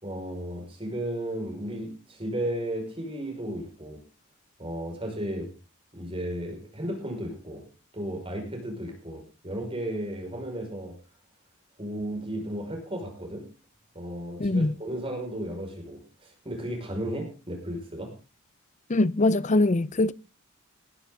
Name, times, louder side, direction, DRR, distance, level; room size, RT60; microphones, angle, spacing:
voice 1, 0.0-4.0 4.6-5.5 5.9-7.6 7.9-11.0 11.8-13.5 13.9-18.1, right 1 dB, 25° right, 5.5 m, -34 dB
voice 2, 14.4-14.8 18.9-20.1, left 2 dB, 35° left, 0.6 m, -22 dB
19.5 x 11.5 x 3.8 m
head